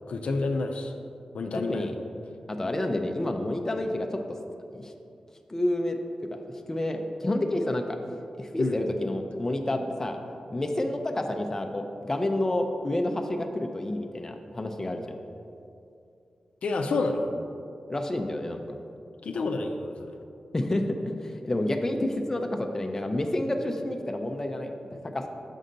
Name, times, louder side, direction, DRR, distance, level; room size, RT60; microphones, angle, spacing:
voice 1, 0.1-0.9 1.3-1.9 8.6-8.8 16.6-17.3 19.2-20.1, left 3 dB, 75° left, 4 dB, 0.5 m, -29 dB
voice 2, 2.5-4.2 4.7-4.9 5.5-6.0 6.3-6.4 6.7-8.0 8.4-10.2 10.5-15.0 17.9-18.6 20.5-25.3, left 1 dB, 20° left, 4 dB, 0.5 m, -29 dB
6.3 x 5.4 x 3.9 m, 2.6 s
wide cardioid pair, 95°, 2 cm